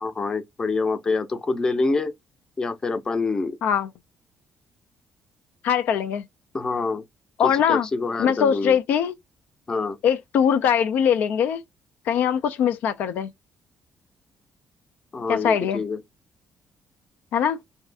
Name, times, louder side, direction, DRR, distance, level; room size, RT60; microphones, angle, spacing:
voice 1, 0.0-2.1 2.6-3.6 6.5-7.0 7.4-8.8 9.7-10.0 15.1-16.0, left 3 dB, 25° left, 0.5 m, -26 dB
voice 2, 5.6-6.2 7.4-7.9 8.2-9.1 10.0-11.6 12.1-13.3 15.3-15.8 17.3-17.6, left 8 dB, 75° left, 0.3 m, -21 dB
2.6 x 2.4 x 3.3 m
cardioid pair, 125°, 3 cm